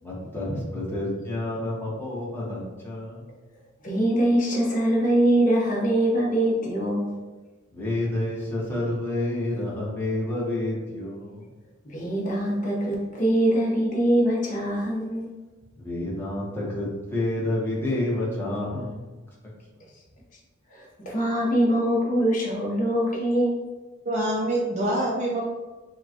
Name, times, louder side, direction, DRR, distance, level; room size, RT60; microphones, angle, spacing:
voice 1, 0.0-3.2 7.7-11.5 15.8-19.2, left 1 dB, 10° left, -6 dB, 0.9 m, -29 dB
voice 2, 3.8-7.1 11.9-15.3 21.1-23.6, right 1 dB, 35° left, -4 dB, 0.9 m, -23 dB
voice 3, 24.0-25.4, right 1 dB, 35° right, -4 dB, 0.4 m, -25 dB
5.0 x 2.2 x 2.8 m, 1.2 s
head